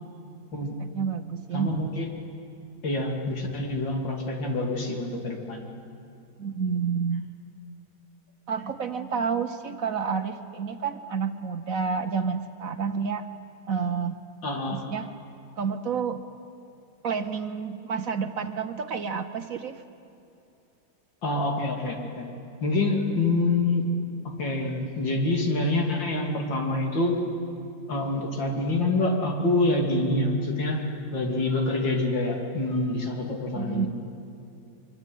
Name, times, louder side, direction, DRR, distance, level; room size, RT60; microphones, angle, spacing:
voice 1, 0.8-1.8 6.4-7.3 8.5-13.2 13.7-14.2 14.7-15.1 15.6-16.2 17.0-19.8 33.5-33.9, right 6 dB, 55° right, 9 dB, 1.1 m, -29 dB
voice 2, 1.5-2.1 2.8-5.6 14.4-14.8 21.2-22.3 22.6-23.8 24.4-27.2 27.9-30.8 31.1-33.9, left 2 dB, 75° left, 1 dB, 3.6 m, -26 dB
24.0 x 24.0 x 9.2 m, 2.7 s
omnidirectional pair, 2.0 m